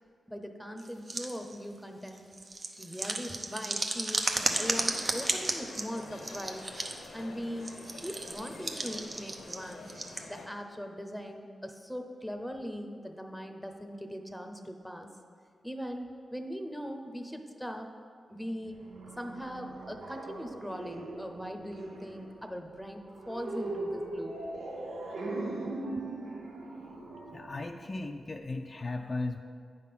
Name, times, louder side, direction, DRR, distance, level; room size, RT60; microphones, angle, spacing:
voice 1, 0.3-2.3 2.8-4.3 4.6-6.7 7.1-7.7 8.0-9.9 10.3-15.1 15.6-17.9 18.3-18.8 19.2-24.4, equal, ahead, 5 dB, 0.8 m, -40 dB
sound 1, 0.8-1.5 2.1-7.1 7.6-10.2, right 2 dB, 50° right, 0.7 m, -34 dB
sound 2, 4.3-10.5, left 2 dB, 80° left, 0.8 m, -48 dB
sound 3, 18.6-28.4, right 2 dB, 90° right, 0.7 m, -40 dB
voice 2, 27.3-29.4, left 2 dB, 40° left, 4 dB, 0.4 m, -36 dB
9.0 x 3.7 x 5.9 m, 2.2 s
cardioid pair, 50°, 0 cm